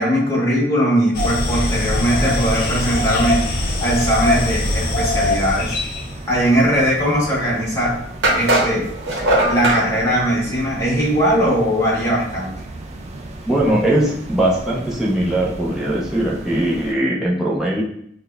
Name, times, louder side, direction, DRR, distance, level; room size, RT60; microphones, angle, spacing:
voice 1, 0.0-3.4 3.8-5.8 6.3-8.0 8.3-8.9 9.5-12.5, equal, 15° left, -7 dB, 1.2 m, -19 dB
sound 1, 1.1-6.1, left 2 dB, 55° left, 0.5 m, -21 dB
sound 2, 1.4-16.9, right 1 dB, 35° right, 0.3 m, -35 dB
sound 3, 7.4-7.5 8.2-9.8, right 1 dB, 70° right, 0.9 m, -18 dB
voice 2, 13.5-17.8, right 1 dB, 5° right, -6 dB, 0.7 m, -20 dB
6.0 x 2.2 x 2.3 m, 0.69 s
head